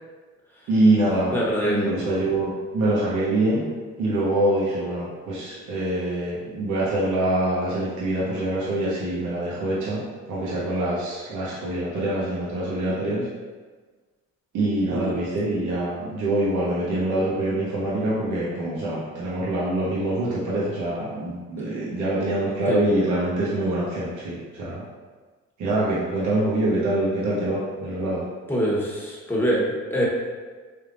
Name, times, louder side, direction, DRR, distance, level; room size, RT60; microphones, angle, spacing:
voice 1, 0.7-1.4 1.6-3.6 4.0-10.0 10.3-13.3 14.5-24.8 25.6-28.2, right 1 dB, 80° right, -7 dB, 1.0 m, -24 dB
voice 2, 1.3-1.9 14.9-15.1 22.7-22.8 28.5-30.0, equal, 5° left, -5 dB, 1.2 m, -24 dB
3.4 x 2.7 x 3.8 m, 1.4 s
cardioid pair, 90°, 30 cm